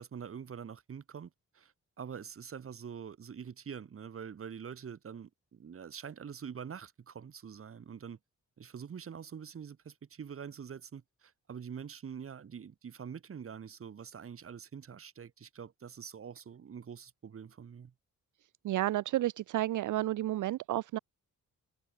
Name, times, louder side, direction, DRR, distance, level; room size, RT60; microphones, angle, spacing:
voice 1, 0.0-8.2 8.6-17.9, right 7 dB, 40° right, 1.2 m, -45 dB
voice 2, 18.6-21.0, right 14 dB, 65° right, 0.5 m, -31 dB
cardioid pair, 105°, 33 cm